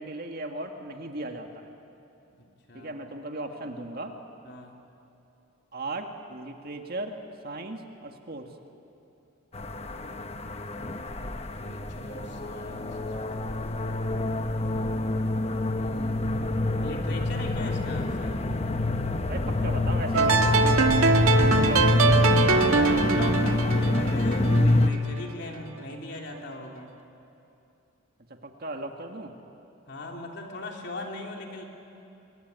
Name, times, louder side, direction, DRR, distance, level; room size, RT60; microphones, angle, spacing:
voice 1, 0.0-1.7 2.7-4.2 5.7-8.6 19.3-21.0 21.4-22.2 28.3-29.3, right 2 dB, 45° right, 4 dB, 1.9 m, -37 dB
voice 2, 2.3-2.9 4.4-4.8 10.6-14.4 15.7-16.5 16.8-18.4 22.5-26.9 29.9-31.6, left 1 dB, 55° left, 1 dB, 3.3 m, -40 dB
sound 1, 9.5-24.9, left 2 dB, 30° left, 1.0 m, -26 dB
sound 2, 20.1-25.2, right 3 dB, 85° right, 1.7 m, -23 dB
26.0 x 23.0 x 9.6 m, 2.8 s
head